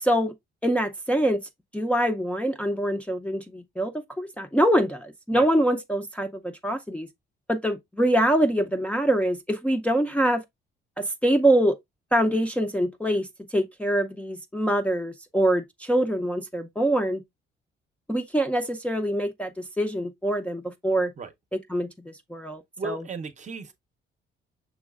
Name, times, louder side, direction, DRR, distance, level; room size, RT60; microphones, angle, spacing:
voice 1, 0.0-0.3 0.6-1.4 1.7-7.1 7.5-10.4 11.0-11.7 12.1-13.3 13.5-17.2 18.1-21.1 21.7-23.0, right 1 dB, 5° left, 0.5 m, -24 dB
voice 2, 22.8-23.7, right 5 dB, 35° right, 0.7 m, -35 dB
6.2 x 3.1 x 2.3 m
cardioid pair, 90°, 20 cm